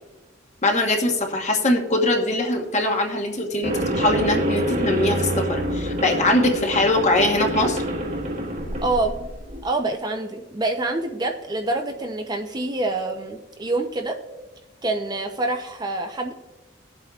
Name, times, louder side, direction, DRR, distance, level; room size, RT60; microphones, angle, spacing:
voice 1, 0.6-7.8, left 1 dB, 35° left, 3 dB, 1.2 m, -22 dB
sound 1, 3.6-9.6, right 1 dB, 40° right, 1.3 m, -26 dB
voice 2, 8.8-9.1 9.6-14.2 14.8-16.3, right 2 dB, 20° right, 4 dB, 0.6 m, -26 dB
20.5 x 7.8 x 2.4 m, 1.1 s
head